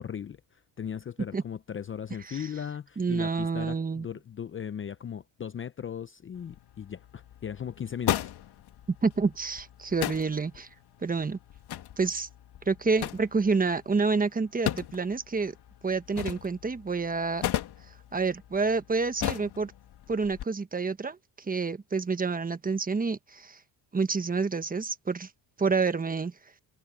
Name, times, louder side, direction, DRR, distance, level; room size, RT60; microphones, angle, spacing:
voice 1, 0.0-8.3, left 8 dB, 25° left, 0.7 m, -38 dB
voice 2, 3.0-4.0 9.0-10.7 11.0-11.4 12.0-12.3 12.7-15.5 15.8-17.4 18.1-19.7 20.1-23.6 23.9-25.3 25.6-26.3, right 4 dB, 20° right, 1.2 m, -28 dB
sound 1, 6.3-20.4, left 12 dB, 60° left, 2.1 m, -37 dB
cardioid pair, 105°, 45 cm